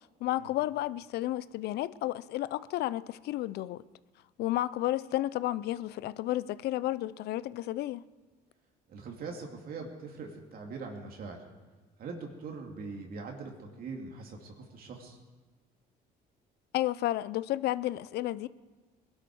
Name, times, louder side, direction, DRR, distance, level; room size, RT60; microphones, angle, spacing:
voice 1, 0.2-3.8 4.4-8.0 16.7-18.5, left 15 dB, 75° left, 0.5 m, -32 dB
voice 2, 8.9-11.4 12.0-15.2, right 4 dB, 60° right, 2.4 m, -42 dB
20.5 x 12.0 x 4.8 m
cardioid pair, 110°, 17 cm